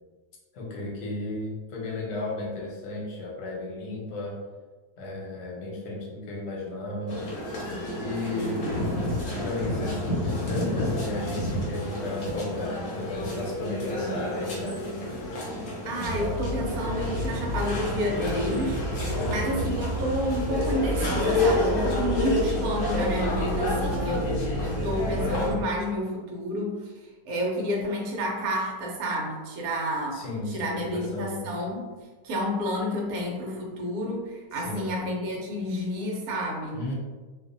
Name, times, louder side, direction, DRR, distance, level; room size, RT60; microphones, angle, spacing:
voice 1, 0.5-4.4 5.0-7.2 8.0-8.6 9.0-14.8 19.1-19.8 30.1-31.5 34.5-35.0 36.7-36.9, left 2 dB, 80° left, -3 dB, 1.3 m, -34 dB
sound 1, 7.1-25.5, left 1 dB, 65° left, 1.2 m, -30 dB
voice 2, 8.4-8.9 15.8-18.8 19.3-30.2 30.5-31.9 32.2-36.8, equal, 70° right, -2 dB, 0.9 m, -30 dB
sound 2, 16.0-25.6, equal, 90° right, 0.6 m, -31 dB
2.7 x 2.4 x 2.5 m, 1.3 s
omnidirectional pair, 1.9 m